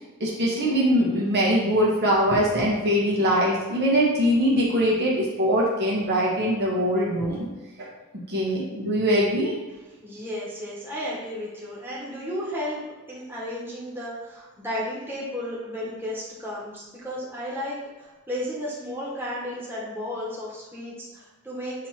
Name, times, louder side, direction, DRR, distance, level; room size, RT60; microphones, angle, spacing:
voice 1, 0.2-7.4 7.8-7.9 8.3-9.5, equal, 50° right, -4 dB, 1.4 m, -22 dB
voice 2, 10.0-12.8 13.1-21.9, equal, 10° right, -7 dB, 1.7 m, -33 dB
8.0 x 2.9 x 4.4 m, 1.2 s
head